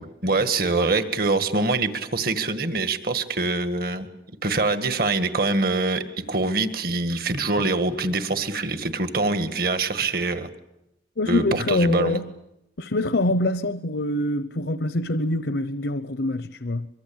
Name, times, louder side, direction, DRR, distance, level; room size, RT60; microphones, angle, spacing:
voice 1, 0.0-4.1 4.4-10.5 11.3-12.2, right 3 dB, 55° right, 1.9 m, -24 dB
voice 2, 11.2-12.3 12.8-16.9, left 1 dB, 75° left, 0.9 m, -25 dB
24.5 x 23.5 x 8.7 m
head